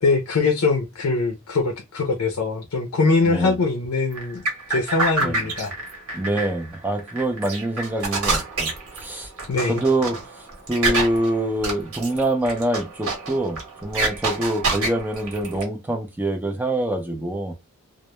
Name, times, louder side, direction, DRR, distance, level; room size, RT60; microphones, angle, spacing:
voice 1, 0.0-4.4 4.7-5.7 9.5-9.8, left 3 dB, 65° left, 0.5 m, -22 dB
voice 2, 3.2-3.5 5.2-5.4 6.1-9.3 9.7-10.2 10.7-17.5, right 1 dB, 10° right, 0.4 m, -25 dB
sound 1, 4.1-15.6, right 3 dB, 70° right, 1.1 m, -28 dB
2.1 x 2.0 x 2.9 m
head